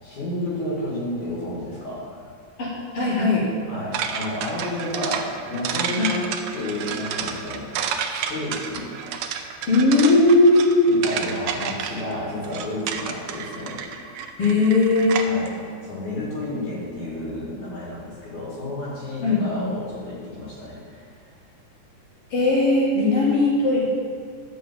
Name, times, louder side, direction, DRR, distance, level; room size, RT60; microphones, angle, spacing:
voice 1, 0.0-2.3 3.7-6.3 6.5-7.7 8.1-8.9 10.9-13.8 15.2-21.2, left 1 dB, 70° left, -6 dB, 4.0 m, -31 dB
voice 2, 2.6-3.5 6.0-6.1 9.7-10.9 14.4-15.4 19.2-19.7 22.3-23.8, left 2 dB, 50° left, -5 dB, 3.1 m, -18 dB
sound 1, 3.9-15.5, right 7 dB, 80° right, 1.4 m, -30 dB
10.5 x 5.5 x 7.6 m, 2.1 s
omnidirectional pair, 3.6 m